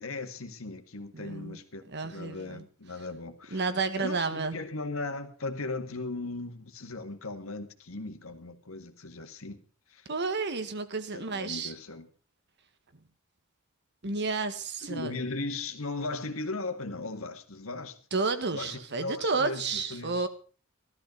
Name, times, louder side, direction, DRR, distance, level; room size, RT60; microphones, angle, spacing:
voice 1, 0.0-3.7 4.0-9.6 9.9-10.1 11.1-12.1 14.8-18.0 18.5-20.3, left 3 dB, 75° left, 1.9 m, -37 dB
voice 2, 1.1-1.6 1.9-2.6 3.5-4.6 10.1-11.7 14.0-15.2 18.1-20.3, right 4 dB, 55° right, 1.6 m, -31 dB
15.5 x 13.0 x 5.3 m
head